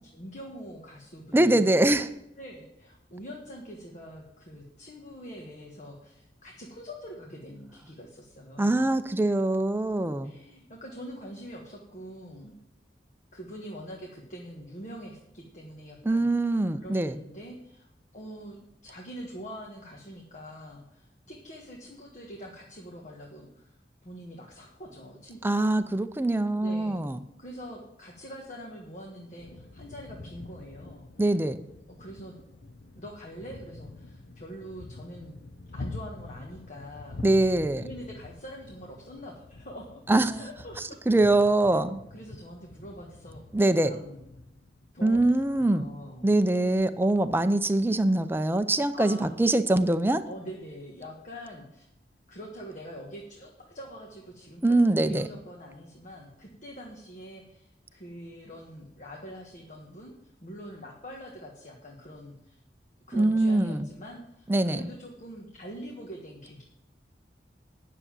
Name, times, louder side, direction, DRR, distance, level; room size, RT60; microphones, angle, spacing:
voice 1, 0.1-1.9 2.4-8.8 10.2-12.6 13.3-16.3 16.8-23.8 24.0-25.8 26.6-27.0 27.4-31.1 31.9-32.3 32.9-35.3 35.7-37.2 37.8-40.0 40.3-41.0 42.1-43.4 43.8-44.2 44.9-46.2 48.9-49.3 50.3-51.9 52.3-62.6 63.1-66.6, equal, 45° left, -1 dB, 1.5 m, -44 dB
voice 2, 1.3-2.1 8.6-10.3 16.0-17.2 25.4-27.2 31.2-31.6 37.2-37.8 40.1-40.3 41.1-42.0 43.5-43.9 45.0-45.9 46.2-50.2 54.6-55.3 63.1-63.9 64.5-64.9, right 2 dB, 10° right, 10 dB, 0.5 m, -23 dB
sound 1, 29.4-47.3, left 2 dB, 80° left, 0.8 m, -46 dB
9.7 x 6.7 x 7.4 m, 0.86 s
head